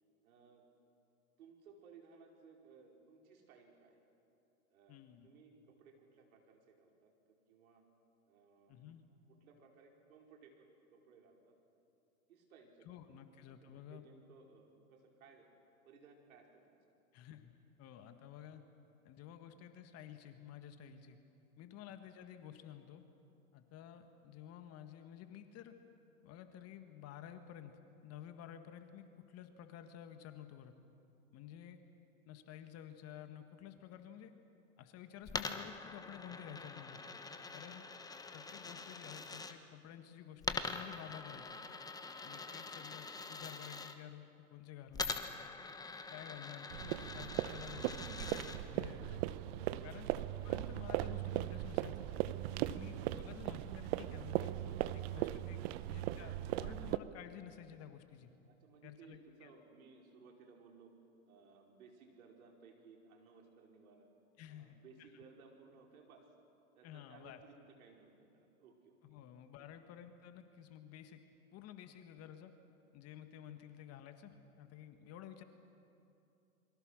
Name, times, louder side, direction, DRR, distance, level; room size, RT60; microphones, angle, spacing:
voice 1, 0.2-0.6 1.4-4.0 4.7-7.1 7.5-7.8 8.3-8.9 9.3-11.5 12.3-12.8 13.4-15.5 15.8-16.8 21.6-21.7 42.3-42.7 49.6-49.9 58.4-60.9 61.2-64.1 64.5-66.3 66.7-69.0 69.6-69.7, right 5 dB, 70° right, 1 dB, 5.1 m, -61 dB
voice 2, 4.9-5.3 8.7-9.0 12.9-14.1 17.1-17.5 17.8-18.7 19.0-21.2 21.6-23.0 23.5-25.8 26.2-27.7 28.0-30.7 31.3-31.8 32.3-34.3 34.8-37.0 37.5-37.9 38.3-41.5 42.2-45.2 46.1-49.2 49.8-50.1 50.4-52.1 52.6-54.6 54.9-55.6 55.9-58.3 58.8-59.5 64.4-65.1 66.8-67.4 69.0-71.2 71.5-72.5 72.9-75.4, left 10 dB, 35° left, 8 dB, 1.8 m, -52 dB
Coin (dropping), 35.3-39.5 40.4-43.9 44.9-48.6, left 4 dB, 10° left, 1.1 m, -44 dB
sound 1, 46.7-57.0, right 14 dB, 45° right, 0.9 m, -38 dB
28.0 x 23.5 x 6.5 m, 2.7 s
hypercardioid pair, 115°, 44 cm